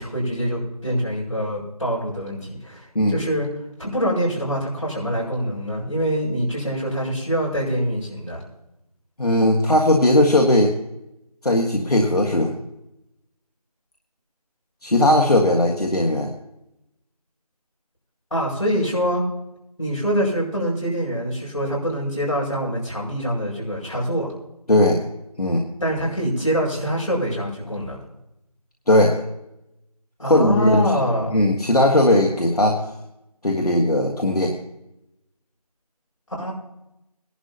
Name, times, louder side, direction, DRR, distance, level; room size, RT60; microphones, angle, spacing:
voice 1, 0.0-3.5 3.8-8.4 18.3-19.2 19.8-24.3 25.8-28.0 30.2-31.3 36.4-36.5, equal, 50° left, -4 dB, 5.5 m, -24 dB
voice 2, 9.2-10.7 11.4-12.5 14.8-16.3 24.7-25.0 25.4-25.6 28.9-29.2 30.3-30.8 31.3-32.8 33.4-34.5, left 1 dB, 75° left, 0 dB, 1.7 m, -18 dB
20.0 x 11.5 x 2.8 m, 0.87 s
figure-of-eight pair, 175°, 20 cm